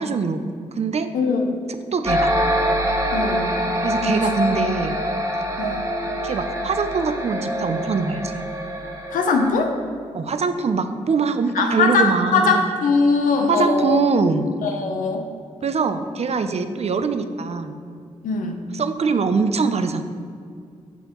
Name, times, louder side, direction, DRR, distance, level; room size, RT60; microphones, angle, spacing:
voice 1, 0.0-1.1 1.9-2.3 3.8-5.0 6.2-8.4 10.1-12.7 13.5-14.5 15.6-17.8 18.7-20.0, right 4 dB, 50° right, 9 dB, 0.5 m, -23 dB
voice 2, 1.1-1.7 3.1-3.5 4.0-4.2 5.6-5.8 9.1-9.7 11.5-14.0 14.6-15.3 18.2-18.6, left 4 dB, 85° left, 4 dB, 0.6 m, -21 dB
sound 1, 2.0-9.5, equal, 25° right, 1.4 m, -24 dB
6.8 x 6.2 x 3.0 m, 2.2 s
supercardioid pair, 45°, 13 cm